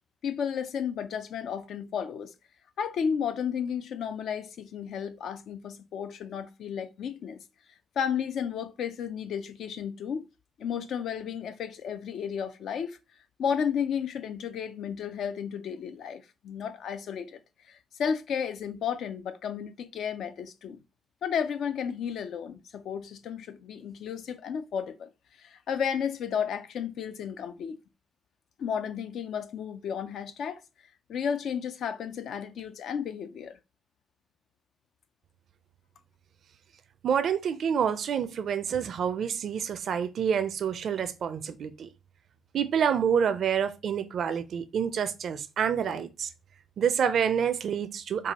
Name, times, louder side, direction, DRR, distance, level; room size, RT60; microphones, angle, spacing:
voice 1, 0.2-2.3 2.8-7.4 8.0-10.3 10.6-13.0 13.4-17.4 17.7-20.8 21.2-25.1 25.4-27.8 28.6-30.6 31.1-33.6, left 7 dB, 70° left, 0.5 m, -33 dB
voice 2, 37.0-41.9 42.5-46.3 46.8-48.3, right 7 dB, 60° right, 0.4 m, -28 dB
4.6 x 2.4 x 2.8 m
cardioid pair, 90°, 0 cm